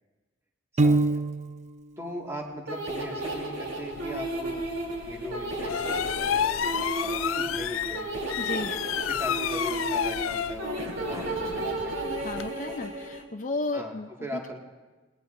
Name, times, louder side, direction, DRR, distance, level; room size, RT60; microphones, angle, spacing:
voice 1, 0.7-1.1 2.0-4.6 5.1-8.4 8.9-11.9 13.7-14.6, equal, 15° right, -1 dB, 2.0 m, -39 dB
Piano, 0.8-1.8, right 2 dB, 35° right, 0.5 m, -23 dB
sound 1, 2.7-13.2, right 2 dB, 75° right, 3.2 m, -33 dB
sound 2, 3.9-12.5, left 9 dB, 85° left, 0.4 m, -32 dB
voice 2, 8.4-8.8 12.2-14.4, left 2 dB, 40° left, 2 dB, 0.6 m, -33 dB
27.5 x 20.0 x 2.6 m, 1.3 s
head